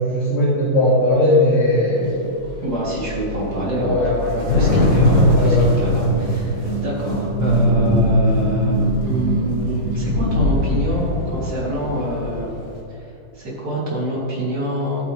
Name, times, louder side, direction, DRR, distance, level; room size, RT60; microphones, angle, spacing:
voice 1, 0.0-2.3 3.8-4.3 4.6-4.8 5.3-5.7, left 1 dB, 45° left, -11 dB, 3.0 m, -18 dB
Thunder / Rain, 2.0-2.2 2.4-6.6 7.3-7.7 8.1-8.3 8.6-12.3, left 2 dB, 70° left, 2.2 m, -24 dB
voice 2, 2.6-12.5 12.9-15.1, right 1 dB, 60° right, -6 dB, 3.5 m, -26 dB
sound 1, 4.3-11.1, equal, 40° right, 2.2 m, -20 dB
13.5 x 9.2 x 3.4 m, 2.8 s
omnidirectional pair, 2.0 m